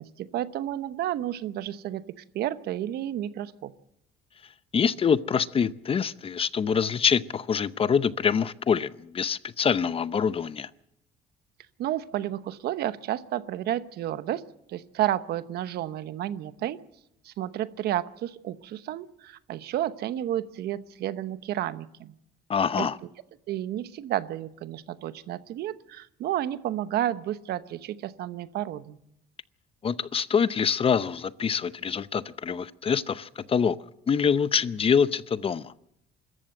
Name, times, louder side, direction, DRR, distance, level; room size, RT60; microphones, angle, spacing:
voice 1, 0.0-2.0 2.3-3.7 11.8-14.4 14.7-16.8 17.2-22.1 22.8-22.9 23.5-29.0, right 12 dB, 70° right, 13 dB, 1.0 m, -31 dB
voice 2, 4.7-10.7 22.5-23.0 29.8-33.8 34.1-35.7, left 6 dB, 35° left, 16 dB, 0.7 m, -25 dB
25.0 x 14.0 x 7.8 m, 0.79 s
cardioid pair, 110°, 17 cm